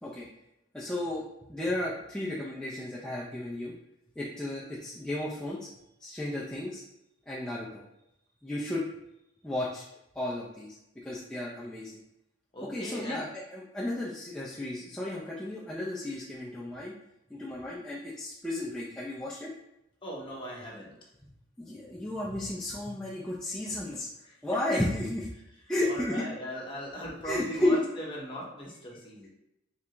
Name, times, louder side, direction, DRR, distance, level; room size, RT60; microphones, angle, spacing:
voice 1, 0.7-1.2 1.5-3.7 4.2-5.7 6.0-6.8 7.3-7.8 8.4-8.8 9.4-9.8 10.2-10.8 11.0-11.9 12.7-16.9 17.3-19.5 21.6-24.1 24.4-25.3 25.7-26.2 27.2-27.8, left 1 dB, 5° left, -7 dB, 0.4 m, -33 dB
voice 2, 12.5-13.2 20.0-20.9 24.2-24.6 25.8-29.3, equal, 25° left, -4 dB, 1.0 m, -39 dB
3.5 x 3.3 x 2.9 m, 0.86 s
head